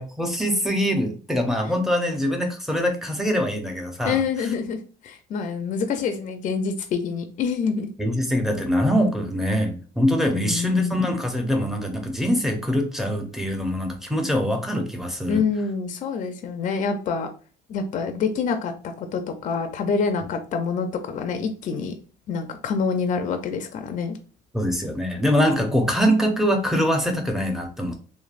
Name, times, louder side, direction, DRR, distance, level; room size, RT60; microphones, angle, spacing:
voice 1, 0.0-4.2 8.0-15.4 24.5-28.0, equal, ahead, 3 dB, 0.6 m, -23 dB
voice 2, 4.0-7.9 10.3-11.0 15.3-17.3 17.7-18.7 19.0-21.9 22.3-24.2, left 5 dB, 50° left, 6 dB, 0.4 m, -26 dB
3.1 x 2.0 x 2.4 m, 0.39 s
cardioid pair, 110°, 17 cm